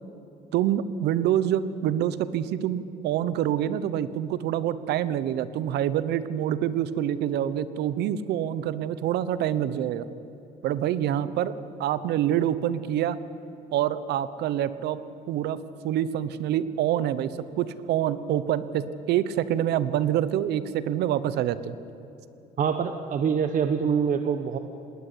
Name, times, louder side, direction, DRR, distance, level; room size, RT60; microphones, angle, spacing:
voice 1, 0.5-10.1 10.6-11.5 11.8-13.2 13.7-15.0 15.3-21.7, right 11 dB, 75° right, 15 dB, 1.1 m, -26 dB
voice 2, 22.6-24.6, right 7 dB, 50° right, 8 dB, 1.1 m, -25 dB
20.0 x 19.0 x 8.5 m, 2.8 s
cardioid pair, 110°, 17 cm